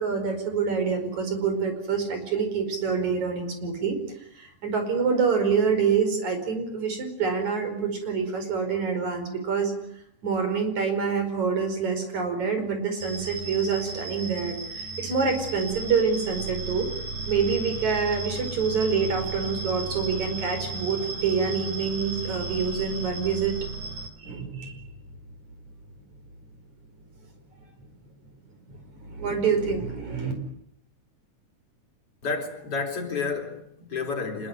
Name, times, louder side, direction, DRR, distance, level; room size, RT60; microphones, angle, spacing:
voice 1, 0.0-4.0 4.3-9.7 10.2-16.9 17.3-23.6 24.2-24.8 28.7-30.3, right 5 dB, 70° right, 6.3 m, -26 dB
sound 1, 13.0-24.1, right 4 dB, 90° right, 5.2 m, -35 dB
voice 2, 32.2-34.5, left 4 dB, 50° left, 4.9 m, -30 dB
26.0 x 22.5 x 9.1 m
omnidirectional pair, 3.5 m